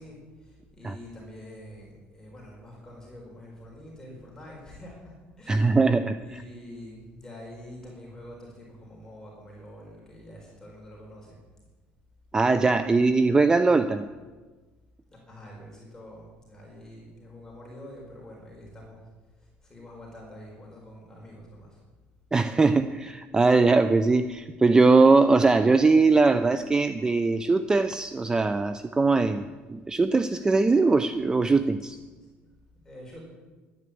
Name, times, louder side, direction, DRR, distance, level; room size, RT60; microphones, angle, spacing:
voice 1, 0.0-5.8 6.2-11.4 15.1-19.0 19.4-21.8 31.8-32.3 32.8-33.2, left 1 dB, 15° left, -3 dB, 4.4 m, -46 dB
voice 2, 5.5-6.2 12.3-14.1 22.3-32.0, right 3 dB, 15° right, 11 dB, 0.5 m, -21 dB
12.0 x 9.4 x 8.5 m, 1.3 s
cardioid pair, 125°, 4 cm